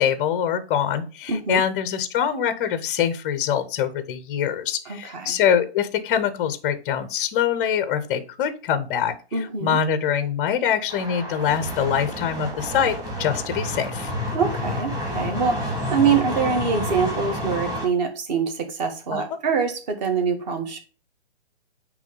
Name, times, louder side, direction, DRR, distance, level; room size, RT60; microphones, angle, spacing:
voice 1, 0.0-14.1 19.1-19.2, left 8 dB, 15° left, 11 dB, 0.5 m, -24 dB
voice 2, 1.3-1.6 4.9-5.4 9.3-9.8 14.3-20.8, right 6 dB, 40° right, 5 dB, 1.6 m, -24 dB
sound 1, 10.9-17.9, left 1 dB, 10° right, 1.5 m, -29 dB
9.0 x 3.1 x 5.2 m, 0.35 s
hypercardioid pair, 135°, 33 cm